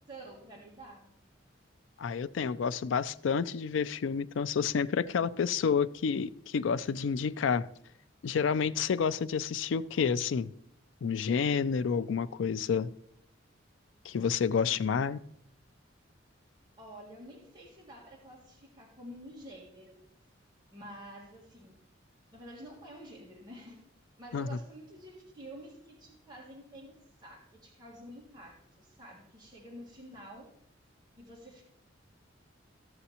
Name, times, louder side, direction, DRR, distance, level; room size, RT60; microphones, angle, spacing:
voice 1, 0.1-1.1 16.8-20.0 20.7-21.8 22.3-23.8 24.2-30.5 31.1-31.6, right 1 dB, 25° right, -3 dB, 1.5 m, -49 dB
voice 2, 2.0-7.7 8.2-10.5 11.0-12.9 14.1-15.2 24.3-24.5, left 6 dB, 80° left, 15 dB, 0.4 m, -29 dB
14.0 x 6.9 x 2.8 m, 0.73 s
head